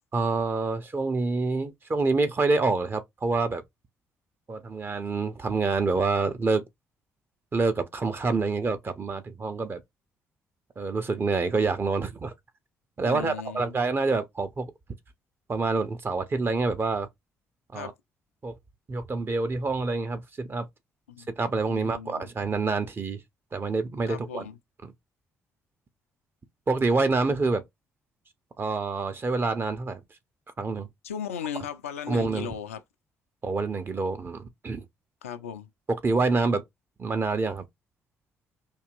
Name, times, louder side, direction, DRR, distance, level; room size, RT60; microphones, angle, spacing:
voice 1, 0.1-3.6 4.5-6.7 7.5-9.8 10.8-12.3 13.0-14.7 15.5-17.1 17.7-17.9 18.4-18.6 18.9-20.7 21.4-23.2 23.5-24.5 24.8-24.9 26.7-27.6 28.6-30.0 30.6-30.9 32.1-32.5 33.4-34.9 35.9-36.6 37.0-37.6, right 3 dB, 30° right, 0.9 m, -27 dB
voice 2, 13.0-13.8 17.7-17.9 21.1-21.3 21.7-22.3 24.1-24.5 31.0-32.8 35.2-35.7, left 8 dB, 80° left, 0.4 m, -36 dB
4.5 x 2.9 x 2.6 m
figure-of-eight pair, 45°, 7 cm